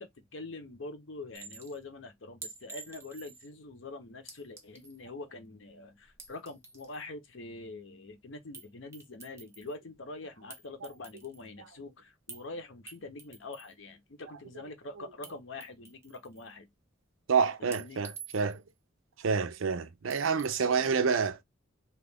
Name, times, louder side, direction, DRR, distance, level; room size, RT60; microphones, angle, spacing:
voice 1, 0.0-16.7 17.7-18.0 20.9-21.0, left 2 dB, 70° left, 0.8 m, -44 dB
Chink clink, 1.3-1.8 2.4-3.5 4.3-5.0 6.0-7.0 8.5-8.7 8.9-9.7 10.5-11.5 12.3-12.4 12.9-13.7 15.2-15.3 15.6-16.5 17.7-18.7 20.1-20.7, right 5 dB, 15° right, 0.7 m, -48 dB
voice 2, 17.3-18.6 19.2-21.4, right 5 dB, 80° right, 0.5 m, -28 dB
2.9 x 2.4 x 3.3 m
head